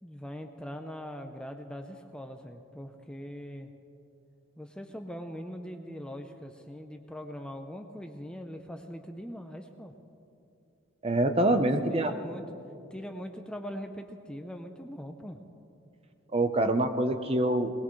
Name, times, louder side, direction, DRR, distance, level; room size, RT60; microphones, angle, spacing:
voice 1, 0.0-3.7 4.6-9.9 11.6-12.4 12.9-15.4, equal, 5° left, 5 dB, 0.6 m, -41 dB
voice 2, 11.0-12.1 16.3-17.7, right 1 dB, 30° right, 7 dB, 0.8 m, -25 dB
22.0 x 19.5 x 3.2 m, 2.7 s
head